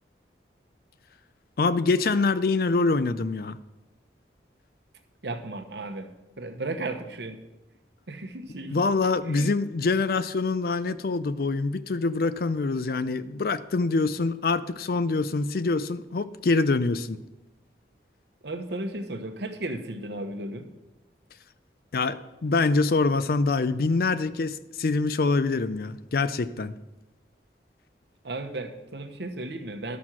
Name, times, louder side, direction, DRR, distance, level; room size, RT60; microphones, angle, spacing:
voice 1, 1.6-3.6 8.7-17.2 21.9-26.7, left 3 dB, 55° left, 14 dB, 0.5 m, -25 dB
voice 2, 5.2-6.1 6.4-7.4 8.1-8.8 9.2-9.6 18.4-20.7 28.2-30.0, right 2 dB, 75° right, 6 dB, 1.0 m, -35 dB
11.5 x 6.1 x 6.1 m, 1.0 s
head